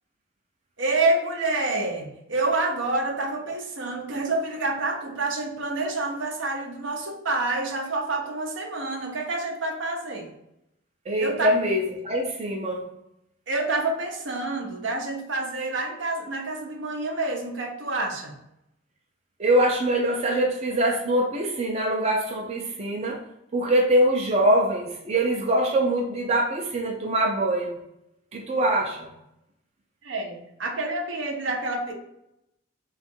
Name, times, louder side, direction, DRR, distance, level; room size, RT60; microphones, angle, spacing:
voice 1, 0.8-10.3 11.2-11.5 13.5-18.3 30.0-31.9, right 2 dB, 70° right, 2 dB, 0.7 m, -28 dB
voice 2, 11.1-12.8 19.4-23.2 23.5-27.8 28.3-29.1, right 1 dB, 35° right, 0 dB, 0.5 m, -23 dB
3.5 x 2.4 x 4.2 m, 0.82 s
head